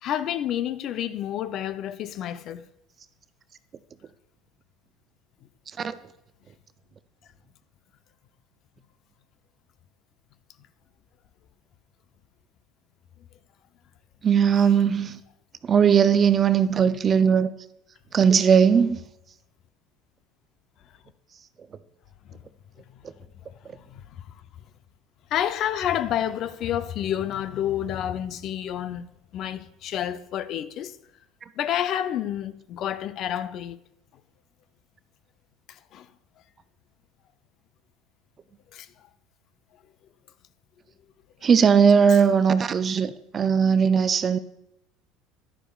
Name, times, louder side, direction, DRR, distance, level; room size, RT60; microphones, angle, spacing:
voice 1, 0.0-2.6 22.3-22.4 23.9-24.0 25.3-29.1 29.3-31.0 31.6-33.8 35.9-36.1 38.7-38.9, left 10 dB, 50° left, 0.5 m, -29 dB
voice 2, 14.2-15.2 15.6-17.5 18.1-19.0 41.4-44.4, right 7 dB, 30° right, 0.4 m, -19 dB
11.0 x 9.9 x 2.3 m
supercardioid pair, 125°, 0 cm